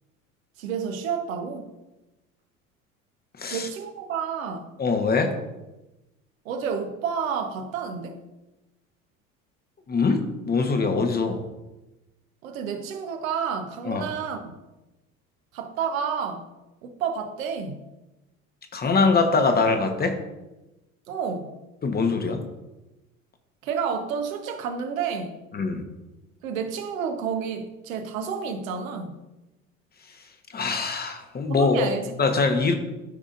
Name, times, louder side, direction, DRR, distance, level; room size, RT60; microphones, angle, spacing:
voice 1, 0.6-1.7 3.5-4.7 6.4-8.2 12.4-14.4 15.5-16.5 16.8-17.8 21.1-21.5 23.6-25.4 26.4-29.2 31.5-32.1, right 6 dB, 70° right, 5 dB, 1.2 m, -30 dB
voice 2, 4.8-5.3 9.9-11.4 13.8-14.1 18.7-20.2 21.8-22.4 25.5-25.8 30.5-31.9 32.2-32.7, left 4 dB, 20° left, 6 dB, 1.1 m, -23 dB
13.0 x 5.0 x 2.6 m, 1.0 s
figure-of-eight pair, 70°, 42 cm